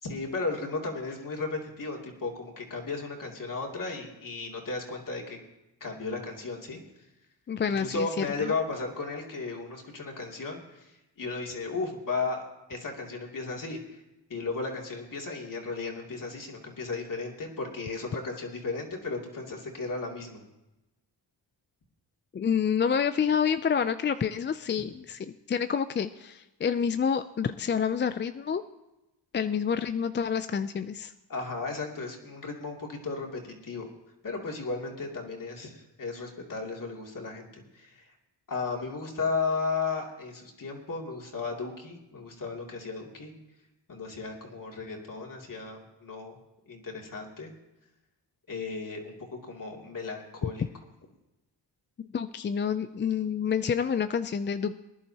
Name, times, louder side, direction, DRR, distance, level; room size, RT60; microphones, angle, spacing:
voice 1, 0.0-5.4 5.8-6.8 7.8-14.0 14.3-20.4 31.3-33.9 34.2-38.1 38.5-43.3 43.9-46.4 46.7-47.5 48.5-49.1 49.4-50.6, left 4 dB, 45° left, 0 dB, 2.7 m, -35 dB
voice 2, 7.5-8.5 22.3-28.6 29.3-31.1 52.0-54.8, left 7 dB, 25° left, 11 dB, 0.3 m, -28 dB
22.0 x 11.0 x 2.8 m, 0.98 s
cardioid pair, 95°, 45 cm